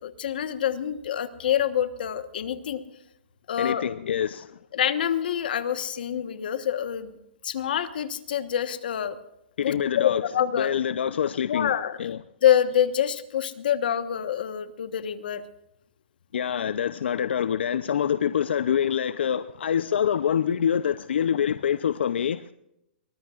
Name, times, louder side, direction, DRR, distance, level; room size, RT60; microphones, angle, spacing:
voice 1, 0.0-2.8 3.5-3.8 4.7-7.1 7.4-9.2 9.6-10.7 11.5-12.0 12.4-15.4, left 10 dB, 55° left, 1.2 m, -26 dB
voice 2, 3.6-4.6 9.6-10.2 10.6-11.7 12.0-12.2 16.3-22.5, left 8 dB, 75° left, 0.6 m, -25 dB
23.0 x 19.5 x 2.5 m
hypercardioid pair, 175°, 6 cm